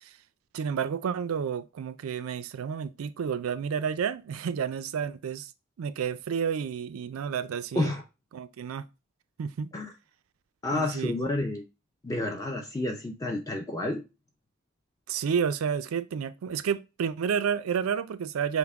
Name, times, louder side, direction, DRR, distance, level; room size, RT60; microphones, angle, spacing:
voice 1, 0.5-5.5 5.8-7.9 8.3-8.8 9.4-9.7 10.7-11.1 15.1-18.6, right 7 dB, 85° right, 0.4 m, -30 dB
voice 2, 10.6-11.6 12.0-14.0, left 2 dB, 15° left, 0.4 m, -30 dB
5.8 x 2.1 x 3.4 m
head